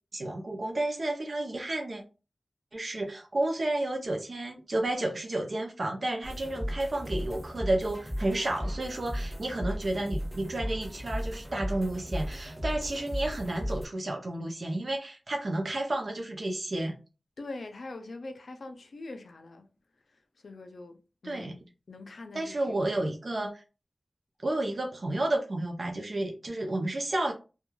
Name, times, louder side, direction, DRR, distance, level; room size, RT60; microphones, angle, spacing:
voice 1, 0.1-2.0 2.7-17.0 21.2-21.5 22.3-23.6 24.4-27.3, right 1 dB, 60° right, 0.5 m, -31 dB
sound 1, 6.2-13.9, equal, 20° right, 0.8 m, -35 dB
voice 2, 17.4-19.7 20.4-22.9 23.3-23.4, left 2 dB, 85° left, 0.4 m, -43 dB
3.0 x 2.2 x 2.2 m
wide cardioid pair, 80°, 0 cm